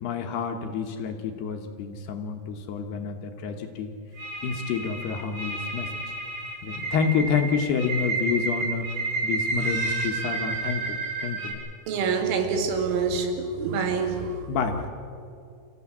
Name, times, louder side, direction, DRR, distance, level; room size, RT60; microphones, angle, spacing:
voice 1, 0.0-3.9 4.4-5.9 6.6-8.9 9.2-11.6 14.5-14.9, left 6 dB, 70° left, 4 dB, 2.7 m, -28 dB
sound 1, 4.2-11.5, right 3 dB, 50° right, 7.0 m, -30 dB
voice 2, 11.9-14.4, right 5 dB, 75° right, 5 dB, 4.5 m, -26 dB
28.0 x 15.0 x 8.6 m, 2.5 s
omnidirectional pair, 5.9 m